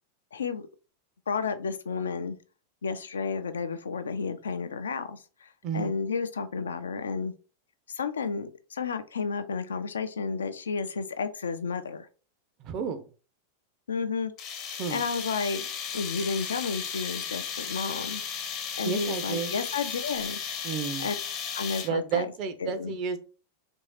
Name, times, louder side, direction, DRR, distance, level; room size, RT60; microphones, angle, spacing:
voice 1, 0.3-0.6 1.3-2.4 2.8-7.3 7.9-12.1 13.9-14.3 14.9-15.6 15.9-18.2 18.8-20.4 21.0-21.2 21.5-22.3 22.6-23.0, left 5 dB, 70° left, 10 dB, 0.4 m, -32 dB
voice 2, 5.6-5.9 12.6-13.0 14.8-15.0 18.8-19.6 20.6-21.1 21.8-23.2, right 6 dB, 40° right, 10 dB, 0.5 m, -31 dB
sound 1, 14.4-22.1, left 7 dB, 35° left, 0.7 m, -35 dB
3.0 x 2.6 x 3.1 m, 0.36 s
figure-of-eight pair, 90°, 0 cm